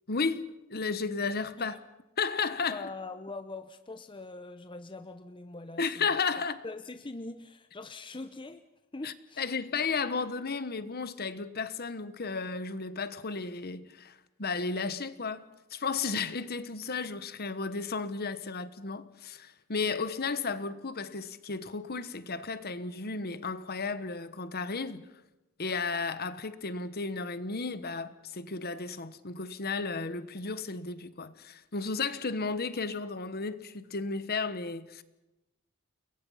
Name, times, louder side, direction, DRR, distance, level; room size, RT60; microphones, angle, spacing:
voice 1, 0.1-1.7 2.2-2.9 5.8-6.6 9.0-15.4 15.7-25.1 25.6-35.0, left 4 dB, 50° left, 1.2 m, -33 dB
voice 2, 2.7-6.2 6.6-8.6 8.9-9.4, left 3 dB, 25° left, 0.8 m, -42 dB
30.0 x 22.0 x 5.7 m
head